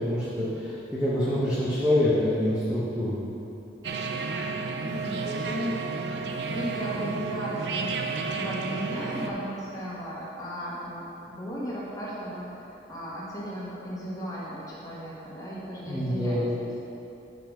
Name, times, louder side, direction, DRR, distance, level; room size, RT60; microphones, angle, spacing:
voice 1, 0.0-3.2 15.8-16.5, left 1 dB, 5° right, -10 dB, 0.9 m, -26 dB
sound 1, 3.8-9.3, right 4 dB, 70° right, 0.5 m, -32 dB
voice 2, 4.8-6.0 6.5-16.7, equal, 20° left, -7 dB, 1.5 m, -36 dB
5.7 x 5.5 x 6.2 m, 2.9 s
head